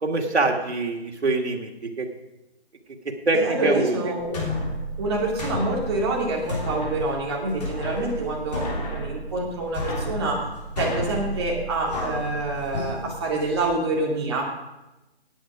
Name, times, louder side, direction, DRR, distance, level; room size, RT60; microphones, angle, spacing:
voice 1, 0.0-1.7 2.0-2.1 3.3-4.1, right 3 dB, 75° right, 2 dB, 2.5 m, -24 dB
voice 2, 3.3-4.5 5.0-10.5 10.8-14.5, right 2 dB, 25° right, -2 dB, 2.4 m, -27 dB
sound 1, 4.2-13.7, equal, 40° left, 3.2 m, -32 dB
17.5 x 8.6 x 4.9 m, 0.98 s
figure-of-eight pair, 165°, 33 cm